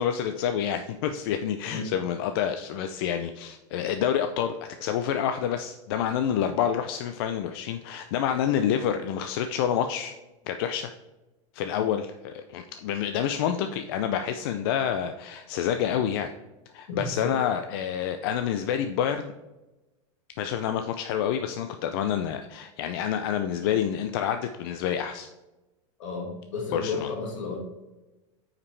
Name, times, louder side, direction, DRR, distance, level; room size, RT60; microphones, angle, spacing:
voice 1, 0.0-10.1 10.5-10.9 11.5-16.3 16.7-19.3 20.4-25.3 26.7-27.1, left 9 dB, 45° left, 7 dB, 0.4 m, -28 dB
voice 2, 16.9-17.4 26.0-27.6, left 4 dB, 70° left, 1 dB, 2.2 m, -33 dB
8.6 x 4.9 x 3.2 m, 1.1 s
supercardioid pair, 170°, 16 cm